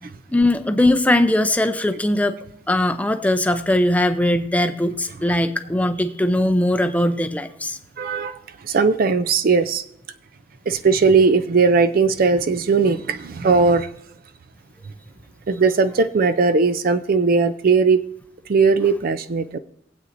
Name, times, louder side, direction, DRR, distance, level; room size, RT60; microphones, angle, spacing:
voice 1, 0.0-2.4 2.7-7.8, left 1 dB, 10° left, 7 dB, 0.5 m, -20 dB
voice 2, 8.0-8.4 8.6-9.8 10.7-13.9 15.5-18.0 18.5-19.6, right 4 dB, 50° right, 13 dB, 0.4 m, -18 dB
22.0 x 8.1 x 2.6 m, 0.75 s
head